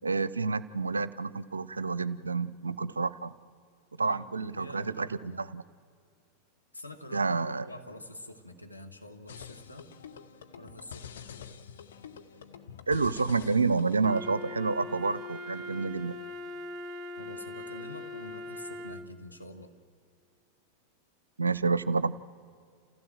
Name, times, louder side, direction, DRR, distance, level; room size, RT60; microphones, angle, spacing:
voice 1, 0.0-3.3 4.0-5.6 7.1-7.6 12.9-16.2 21.4-22.2, right 4 dB, 75° right, 18 dB, 0.5 m, -29 dB
voice 2, 4.0-5.4 6.7-9.9 10.6-11.1 17.2-19.7, left 1 dB, 90° left, 2 dB, 1.7 m, -46 dB
sound 1, 9.3-14.4, left 7 dB, 60° left, 1.0 m, -47 dB
Wind instrument woodwind instrument, 14.0-19.2, left 2 dB, 30° right, 0.9 m, -41 dB
28.5 x 15.5 x 7.5 m, 2.3 s
figure-of-eight pair, 90°, 0 cm